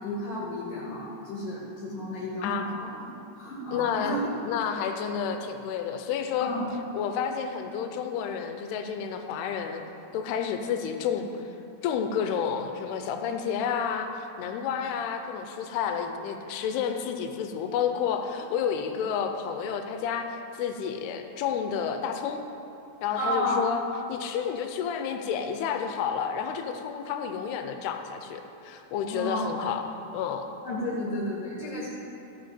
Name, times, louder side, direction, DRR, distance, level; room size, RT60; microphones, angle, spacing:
voice 1, 0.0-2.9 3.4-4.2 6.4-6.7 23.2-23.6 29.1-29.6 30.6-31.9, left 1 dB, 65° left, -5 dB, 2.6 m, -32 dB
voice 2, 3.7-6.5 6.9-9.8 10.1-11.5 11.8-20.3 20.5-22.4 23.0-23.8 24.1-29.9 30.1-30.5, left 7 dB, 90° left, 6 dB, 2.7 m, -30 dB
13.5 x 8.3 x 4.3 m, 2.9 s
omnidirectional pair, 4.6 m